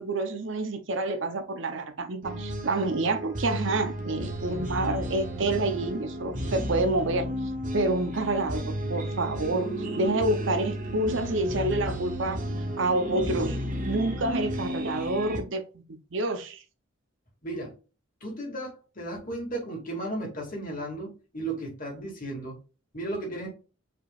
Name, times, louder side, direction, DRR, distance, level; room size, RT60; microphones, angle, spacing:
voice 1, 0.0-12.4 12.8-13.6 13.9-16.6, right 2 dB, 65° right, 0.7 m, -28 dB
sound 1, 2.2-15.4, equal, 40° right, 0.9 m, -33 dB
voice 2, 17.4-17.7 18.2-22.6 22.9-23.5, right 1 dB, 40° left, 2.1 m, -35 dB
4.7 x 3.7 x 2.4 m
head